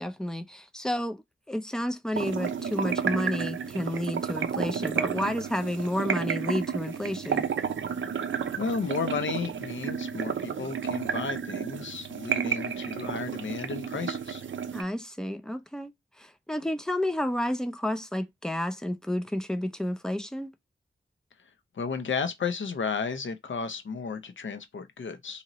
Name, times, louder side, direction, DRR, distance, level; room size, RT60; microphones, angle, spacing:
voice 1, 0.0-7.5 14.7-15.9 16.2-20.5, left 1 dB, 5° left, 0.4 m, -31 dB
sound 1, 2.2-14.8, right 7 dB, 70° right, 0.4 m, -31 dB
voice 2, 8.6-14.4 21.7-25.4, left 5 dB, 70° left, 0.6 m, -33 dB
2.8 x 2.5 x 2.9 m
wide cardioid pair, 110°, 20 cm